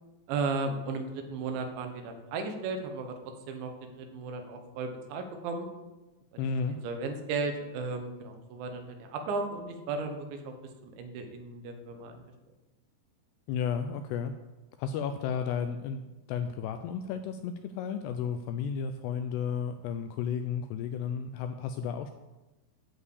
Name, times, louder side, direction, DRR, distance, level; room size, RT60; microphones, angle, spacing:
voice 1, 0.3-3.2 3.5-5.7 6.3-10.5 10.8-12.2, right 4 dB, 80° right, 5 dB, 3.5 m, -35 dB
voice 2, 6.4-6.8 13.5-14.3 14.8-16.0 16.3-22.1, left 7 dB, 85° left, 8 dB, 2.4 m, -33 dB
11.0 x 4.8 x 8.3 m, 1.1 s
omnidirectional pair, 5.3 m